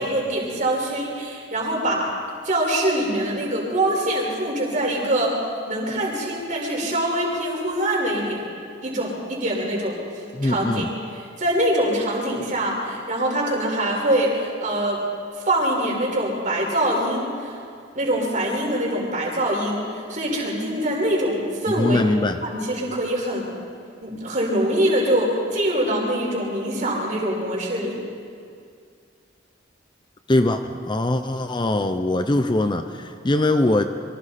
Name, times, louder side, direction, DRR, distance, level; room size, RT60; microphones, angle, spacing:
voice 1, 0.0-2.1 2.4-5.3 5.7-8.4 8.8-10.0 10.4-10.8 11.2-15.0 15.4-17.5 17.9-22.0 22.4-23.5 24.0-28.0, right 1 dB, 40° right, -2 dB, 4.9 m, -24 dB
voice 2, 10.3-10.9 21.8-22.4 30.3-30.6 30.9-33.8, left 2 dB, 25° left, 8 dB, 0.6 m, -21 dB
26.5 x 23.5 x 4.3 m, 2.3 s
head